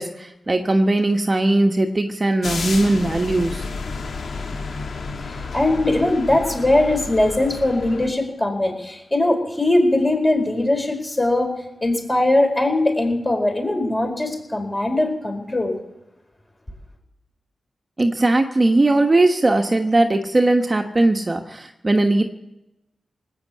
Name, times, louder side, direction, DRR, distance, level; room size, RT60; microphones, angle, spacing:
voice 1, 0.0-3.7 18.0-22.2, right 2 dB, 30° right, 5 dB, 1.3 m, -19 dB
sound 1, 2.4-8.1, left 4 dB, 70° left, 1.5 m, -31 dB
voice 2, 5.2-11.5 11.8-15.8, left 1 dB, 25° left, 3 dB, 4.6 m, -20 dB
19.0 x 8.9 x 8.4 m, 0.90 s
cardioid pair, 65°, 0 cm